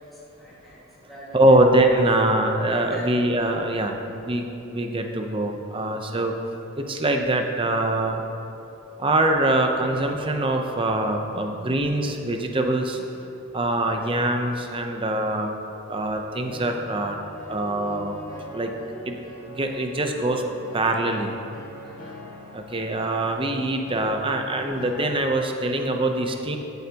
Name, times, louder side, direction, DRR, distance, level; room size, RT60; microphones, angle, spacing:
voice 1, 0.0-1.6 2.0-2.2 2.8-3.2 11.3-11.4 12.9-13.1 21.8-22.3, equal, ahead, -10 dB, 1.9 m, -45 dB
voice 2, 1.3-6.3 6.8-8.2 9.0-13.0 13.5-15.5 15.9-17.2 17.5-18.2 18.5-18.7 19.1-19.2 19.5-20.4 20.7-21.3 22.5-26.6, right 1 dB, 25° right, 4 dB, 0.7 m, -23 dB
sound 1, 16.0-25.1, equal, 40° left, 1.8 m, -42 dB
15.0 x 7.9 x 2.9 m, 2.9 s
head